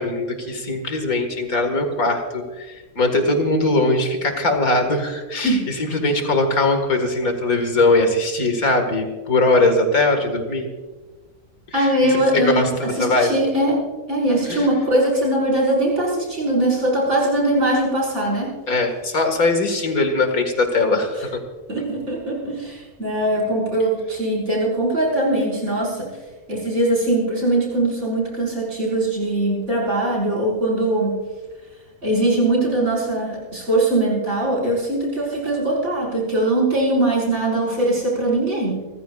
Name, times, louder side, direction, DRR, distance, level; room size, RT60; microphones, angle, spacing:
voice 1, 0.0-10.7 11.7-12.7 13.0-13.3 14.5-14.7 18.7-21.4, left 2 dB, 75° left, 5 dB, 2.3 m, -20 dB
voice 2, 11.7-18.5 21.7-26.1 26.5-31.2 32.0-38.8, right 1 dB, 50° right, -4 dB, 5.5 m, -21 dB
28.0 x 15.0 x 2.4 m, 1.3 s
omnidirectional pair, 1.5 m